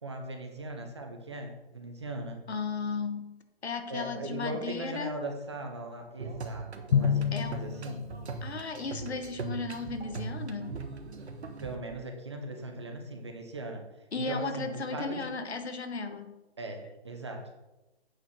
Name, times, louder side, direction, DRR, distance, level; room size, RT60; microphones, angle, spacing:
voice 1, 0.0-2.5 3.9-8.1 11.6-13.9 14.1-15.3 16.6-17.7, right 2 dB, 25° right, 4 dB, 0.8 m, -39 dB
voice 2, 2.5-5.2 7.3-7.6 8.4-10.8 14.1-16.4, left 4 dB, 80° left, 8 dB, 1.4 m, -35 dB
sound 1, 6.2-11.8, right 4 dB, 80° right, 1.3 m, -39 dB
Drum, 6.9-8.7, left 8 dB, 65° left, 0.5 m, -29 dB
8.7 x 4.8 x 6.3 m, 1.0 s
hypercardioid pair, 175°, 32 cm